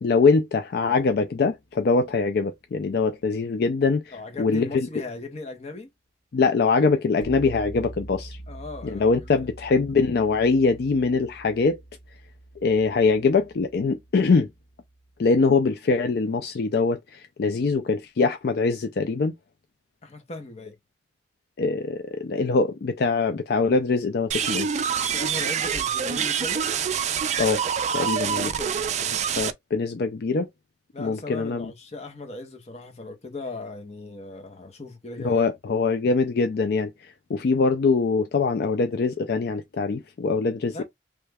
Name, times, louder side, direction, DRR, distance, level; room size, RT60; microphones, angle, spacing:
voice 1, 0.0-4.9 6.3-8.4 8.8-11.8 12.6-14.5 15.2-19.3 21.6-24.7 27.4-27.6 27.9-28.5 29.1-30.5 31.0-31.7 35.2-40.8, left 4 dB, 60° left, 0.4 m, -23 dB
voice 2, 4.1-5.9 8.5-9.4 20.0-20.7 25.1-26.7 28.2-28.9 30.9-35.4 40.7-40.8, left 2 dB, 40° left, 0.8 m, -38 dB
sound 1, 7.2-15.3, right 1 dB, 80° left, 1.3 m, -44 dB
sound 2, 24.3-29.5, right 7 dB, 40° right, 0.4 m, -26 dB
3.2 x 2.3 x 3.3 m
head